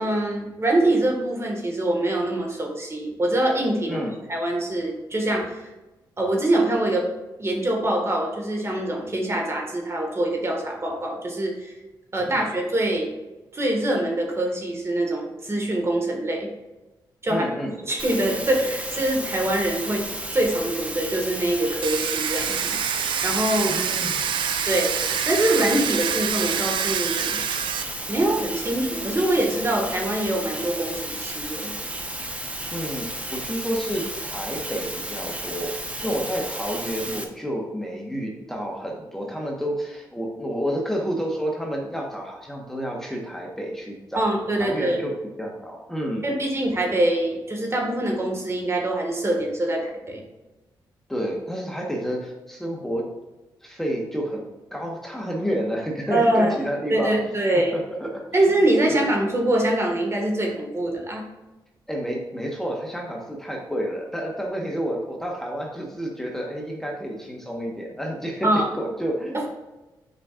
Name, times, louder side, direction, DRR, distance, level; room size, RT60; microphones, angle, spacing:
voice 1, 0.0-5.6 6.2-7.1 7.4-11.7 12.1-13.1 13.5-16.5 17.2-17.5 17.8-20.0 20.3-23.9 24.7-24.9 25.2-27.4 28.1-31.7 44.1-45.0 46.2-50.2 56.1-56.6 56.9-57.7 58.3-61.2 68.4-68.7 69.3-69.5, right 1 dB, 30° right, 1 dB, 1.7 m, -24 dB
voice 2, 17.3-17.7 23.7-24.3 32.7-44.2 44.6-45.1 45.4-46.2 51.1-53.1 53.6-57.2 57.7-58.2 58.9-59.0 61.9-69.5, equal, 5° left, -1 dB, 1.2 m, -30 dB
sound 1, 18.0-37.2, right 1 dB, 15° right, 1.0 m, -33 dB
Domestic sounds home sounds, 21.8-27.8, right 8 dB, 70° right, 0.4 m, -26 dB
7.6 x 5.1 x 2.4 m, 1.1 s
cardioid pair, 70°, 8 cm